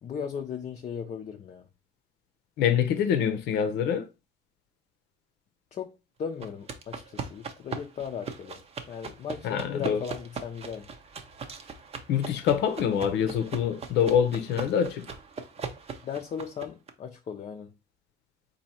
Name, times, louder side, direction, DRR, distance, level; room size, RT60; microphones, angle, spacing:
voice 1, 0.0-1.7 5.7-5.9 6.2-8.6 8.9-10.9 16.0-17.7, left 7 dB, 40° left, 0.5 m, -37 dB
voice 2, 2.6-4.1 9.4-10.0 12.1-15.0, left 8 dB, 80° left, 0.7 m, -25 dB
sound 1, 6.4-16.9, right 5 dB, 35° right, 0.7 m, -40 dB
4.1 x 2.7 x 4.3 m
cardioid pair, 110°, 17 cm